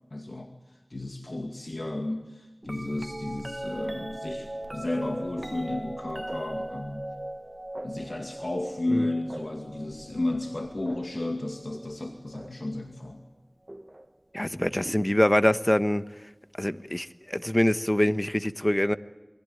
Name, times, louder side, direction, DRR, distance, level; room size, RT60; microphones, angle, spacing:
voice 1, 0.1-0.5 0.9-7.1 7.8-13.2, left 1 dB, 75° left, 3 dB, 2.3 m, -33 dB
sound 1, 2.6-12.7 13.7-14.1 14.8-15.8 17.6-17.7, right 1 dB, 35° right, 1.4 m, -40 dB
voice 2, 14.3-16.0 16.6-19.0, left 1 dB, 20° left, 12 dB, 1.2 m, -24 dB
28.5 x 22.0 x 9.3 m, 1.1 s
wide cardioid pair, 40°, 0 cm